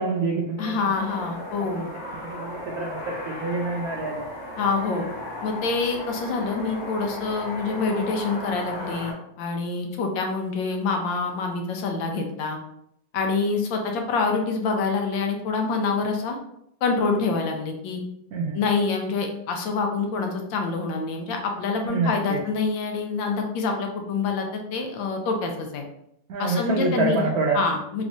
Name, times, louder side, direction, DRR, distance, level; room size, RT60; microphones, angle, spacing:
voice 1, 0.0-0.8 1.8-1.9 2.2-4.2 18.3-18.6 21.9-22.4 26.3-27.6, right 3 dB, 85° right, 0 dB, 0.8 m, -26 dB
voice 2, 0.6-1.8 4.6-5.1 5.4-12.6 13.1-16.4 16.8-18.0 18.5-25.8 26.4-27.3 27.5-28.0, left 4 dB, 75° left, 3 dB, 1.3 m, -26 dB
sound 1, 0.9-9.1, left 1 dB, 45° left, 1.2 m, -36 dB
3.5 x 3.1 x 2.6 m, 0.75 s
omnidirectional pair, 2.1 m